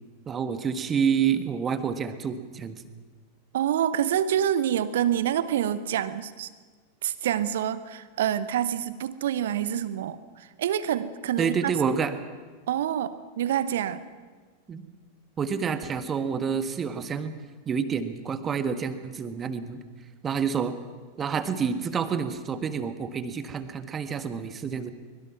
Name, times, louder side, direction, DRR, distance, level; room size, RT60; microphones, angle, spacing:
voice 1, 0.3-2.8 11.4-12.1 14.7-14.8 15.4-17.3 17.6-19.8 20.2-20.8 21.2-24.9, right 6 dB, 20° right, 10 dB, 1.6 m, -28 dB
voice 2, 3.5-6.5 7.0-11.7 12.7-14.0, right 10 dB, 60° right, 15 dB, 1.1 m, -27 dB
24.0 x 22.0 x 6.0 m, 1.4 s
figure-of-eight pair, 90°, 0 cm